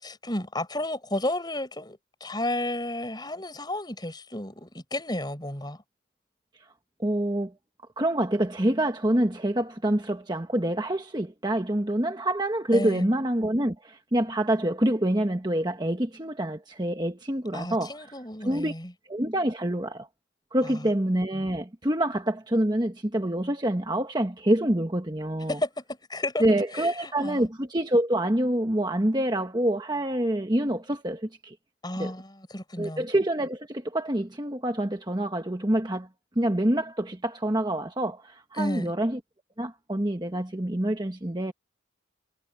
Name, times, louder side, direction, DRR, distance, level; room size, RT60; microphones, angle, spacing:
voice 1, 0.0-5.8 12.7-13.1 17.5-18.9 20.7-20.8 25.5-27.4 31.8-33.1 38.6-38.9, left 1 dB, 20° left, 7.1 m, -32 dB
voice 2, 7.0-7.5 8.0-18.1 18.4-18.7 19.1-20.1 20.5-25.6 26.4-31.5 32.0-32.1 32.8-36.1 36.3-39.2 39.6-41.5, right 1 dB, 20° right, 1.3 m, -26 dB
head